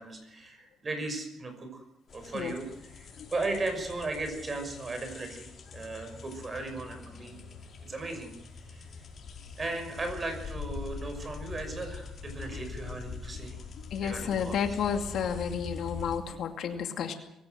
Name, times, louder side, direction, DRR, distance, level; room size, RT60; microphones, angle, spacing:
voice 1, 0.0-1.8 2.1-7.4 7.9-9.1 9.6-13.6 14.0-14.8, right 2 dB, 25° right, 6 dB, 5.9 m, -37 dB
sound 1, 2.1-16.2, left 4 dB, 45° left, 5.0 m, -43 dB
voice 2, 13.9-17.1, left 7 dB, 60° left, 6 dB, 2.4 m, -31 dB
24.0 x 16.0 x 7.8 m, 0.86 s
cardioid pair, 140°, 0 cm